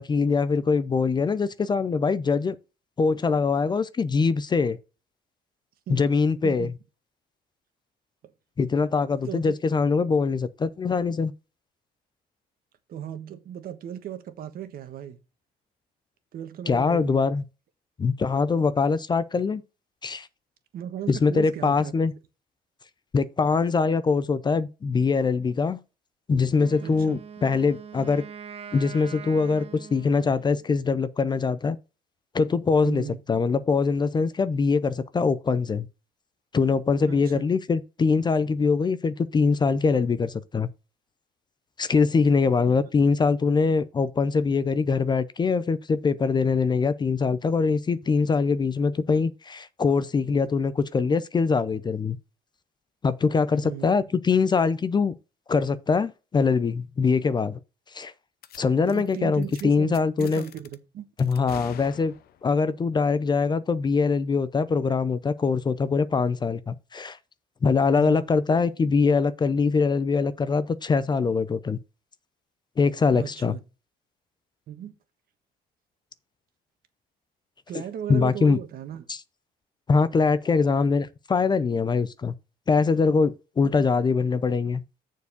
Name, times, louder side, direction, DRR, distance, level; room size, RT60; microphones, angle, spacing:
voice 1, 0.0-2.6 3.0-4.8 5.9-6.7 8.6-11.3 16.7-17.4 18.0-19.6 20.0-20.3 21.1-22.1 23.1-25.8 26.3-28.2 28.7-31.8 32.3-35.9 36.5-40.7 41.8-52.2 53.0-55.1 55.5-57.6 57.9-58.1 58.6-60.4 61.2-62.1 62.4-67.2 67.6-71.8 72.8-73.5 78.1-78.6 79.1-79.2 79.9-82.3 82.7-84.8, left 4 dB, 25° left, 0.5 m, -23 dB
voice 2, 9.2-9.6 12.9-15.2 16.3-17.2 20.7-21.9 26.8-27.2 32.8-33.2 37.0-37.5 53.5-53.9 58.8-61.0 68.0-68.3 73.1-73.6 74.7-74.9 77.7-79.0, right 10 dB, 60° right, 1.4 m, -36 dB
Wind instrument woodwind instrument, 26.5-30.7, right 7 dB, 35° right, 1.0 m, -43 dB
sound 1, 58.4-58.6 58.9-59.1 59.4-59.6 59.9-60.8 61.2-62.5, left 10 dB, 65° left, 0.8 m, -44 dB
6.9 x 4.6 x 6.7 m
cardioid pair, 110°, 17 cm